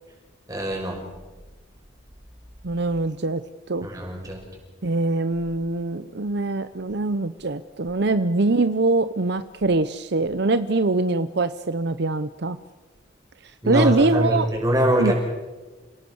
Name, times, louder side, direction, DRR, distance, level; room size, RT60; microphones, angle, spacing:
voice 1, 0.5-1.0 3.8-4.4 13.6-15.1, equal, 20° right, 1 dB, 6.2 m, -23 dB
voice 2, 2.6-3.4 3.7-3.9 4.8-12.6 13.4-14.5 15.0-15.1, right 3 dB, 60° right, 12 dB, 0.8 m, -23 dB
28.5 x 18.0 x 7.1 m, 1.3 s
head